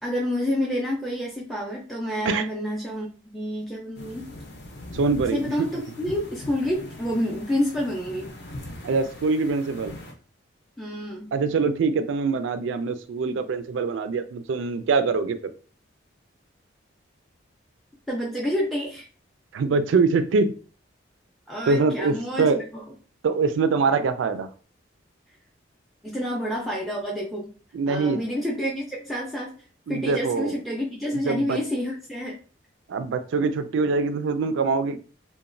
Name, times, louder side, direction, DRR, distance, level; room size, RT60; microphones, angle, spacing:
voice 1, 0.0-4.3 5.3-8.3 10.8-11.3 18.1-19.1 21.5-22.8 26.0-27.5 27.9-29.5 29.9-32.4, equal, ahead, -5 dB, 0.4 m, -28 dB
sound 1, 3.9-10.1, left 1 dB, 60° left, 0.6 m, -41 dB
voice 2, 4.9-5.7 8.8-9.9 11.3-15.5 19.5-20.5 21.7-22.6 23.2-24.5 27.7-28.2 29.9-30.6 31.1-31.6 32.9-35.0, right 4 dB, 80° right, 10 dB, 0.3 m, -24 dB
2.9 x 2.1 x 2.5 m, 0.38 s
head